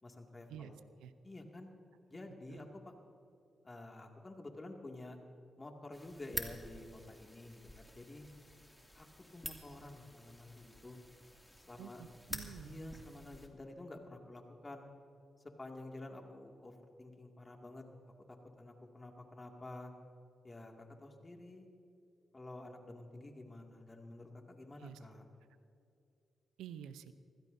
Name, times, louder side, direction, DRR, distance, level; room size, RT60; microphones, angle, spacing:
voice 1, 0.0-0.8 1.2-1.7 2.1-2.9 3.6-5.2 5.6-8.2 8.9-9.1 9.3-11.0 11.5-12.0 12.6-14.8 15.6-19.9 20.4-21.7 22.3-25.2, left 2 dB, 30° left, 2 dB, 2.2 m, -50 dB
sound 1, 5.9-13.5, left 1 dB, 10° left, 2.4 m, -49 dB
voice 2, 11.8-12.7 24.8-25.0 26.6-27.1, right 9 dB, 85° right, 12 dB, 0.6 m, -49 dB
24.0 x 16.0 x 2.7 m, 2.7 s
supercardioid pair, 45°, 0 cm